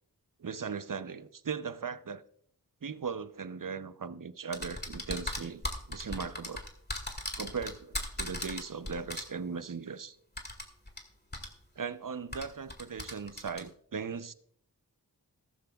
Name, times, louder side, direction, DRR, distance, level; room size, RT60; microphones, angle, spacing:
voice 1, 0.4-2.2 2.8-5.6 5.9-6.6 7.4-10.2 11.8-14.3, right 5 dB, 55° right, 0.7 m, -38 dB
sound 1, 4.5-9.2 10.4-11.0 11.3-11.5 12.3-13.6, left 1 dB, 25° left, 2.1 m, -37 dB
15.5 x 14.0 x 2.3 m
wide cardioid pair, 45°, 40 cm